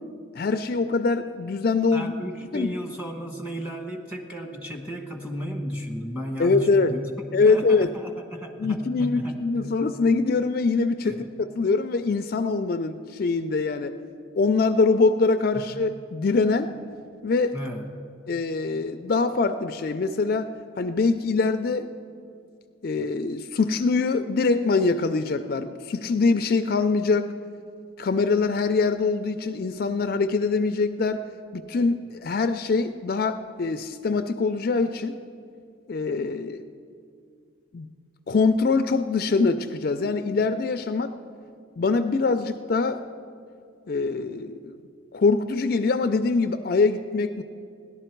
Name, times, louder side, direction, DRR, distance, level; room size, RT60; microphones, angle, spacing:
voice 1, 0.4-2.1 2.5-2.7 6.4-7.0 7.3-8.0 8.6-14.0 14.3-16.7 17.2-17.6 18.3-20.5 20.8-21.9 22.8-27.3 28.0-31.2 31.5-35.1 35.9-36.6 37.7-37.9 38.3-41.1 41.8-43.0 43.9-44.8 45.1-47.4, left 4 dB, 50° left, 9 dB, 0.4 m, -23 dB
voice 2, 1.9-9.8 11.0-11.3 15.5-15.6 17.5-17.9, equal, 5° right, 0 dB, 1.2 m, -34 dB
17.5 x 11.5 x 4.5 m, 2.4 s
head